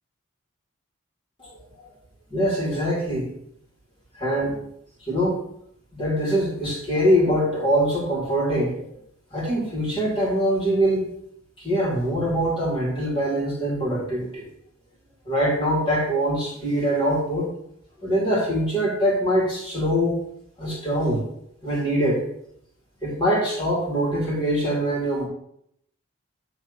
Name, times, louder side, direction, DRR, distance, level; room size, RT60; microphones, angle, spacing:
voice 1, 1.4-1.9 2.3-3.3 4.1-4.6 5.0-5.4 5.9-8.9 9.3-11.1 11.6-14.5 15.3-17.5 18.0-20.2 20.6-21.3 21.6-22.2 23.0-25.3, equal, 25° left, -5 dB, 2.5 m, -23 dB
9.1 x 3.3 x 6.6 m, 0.73 s
head